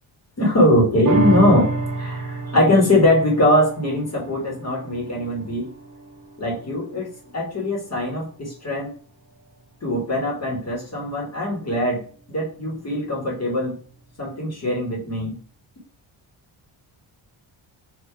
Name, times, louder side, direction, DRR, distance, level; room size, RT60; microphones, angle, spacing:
voice 1, 0.4-1.7 2.0-5.7 6.4-8.9 9.8-13.8 14.2-15.3, left 1 dB, 30° left, -2 dB, 1.3 m, -21 dB
sound 1, 1.0-7.7 8.2-8.3, right 3 dB, 45° right, 1.2 m, -28 dB
3.7 x 2.5 x 4.4 m, 0.42 s
wide cardioid pair, 160°, 49 cm